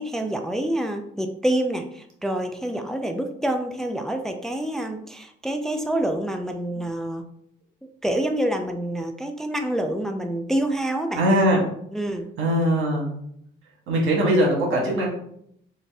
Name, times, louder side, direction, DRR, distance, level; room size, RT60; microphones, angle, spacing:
voice 1, 0.0-7.2 8.0-11.2 11.9-12.3, right 1 dB, ahead, 5 dB, 0.4 m, -27 dB
voice 2, 11.1-11.6 12.4-13.1 13.9-15.1, equal, 85° right, -1 dB, 1.4 m, -20 dB
4.1 x 2.5 x 3.4 m, 0.70 s
cardioid pair, 90°, 20 cm